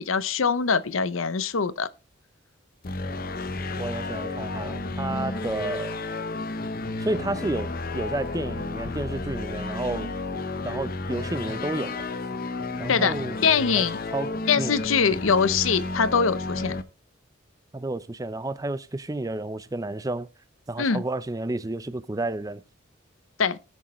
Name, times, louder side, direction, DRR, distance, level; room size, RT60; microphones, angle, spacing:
voice 1, 0.0-1.9 12.9-13.1 13.4-14.0 14.5-16.7 20.8-21.0 23.4-23.6, left 6 dB, 70° left, 0.7 m, -23 dB
sound 1, 2.8-16.8, left 3 dB, 45° left, 0.8 m, -32 dB
voice 2, 3.8-6.0 7.0-10.1 10.6-12.0 12.8-13.4 13.8-13.9 14.1-14.8 17.7-20.3 20.7-22.6, right 2 dB, 15° right, 0.5 m, -31 dB
19.0 x 6.4 x 3.1 m
head